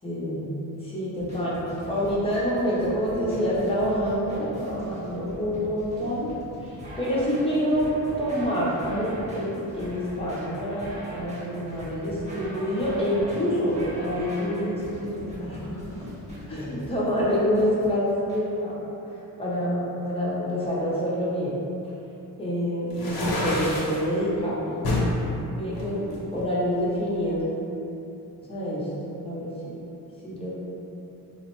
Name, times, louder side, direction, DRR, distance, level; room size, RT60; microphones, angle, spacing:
voice 1, 0.0-0.5 0.8-6.3 7.0-15.9 16.5-18.8 19.4-21.5 22.4-24.9 25.5-27.4 28.4-28.9 29.3-29.8 30.2-30.5, equal, 15° left, -8 dB, 0.6 m, -27 dB
sound 1, 1.2-18.4, equal, 20° right, 0.8 m, -41 dB
sound 2, 22.9-24.0 24.8-25.1 25.7-26.8, left 2 dB, 80° left, 0.8 m, -27 dB
3.4 x 2.0 x 2.9 m, 3.0 s
cardioid pair, 145°, 36 cm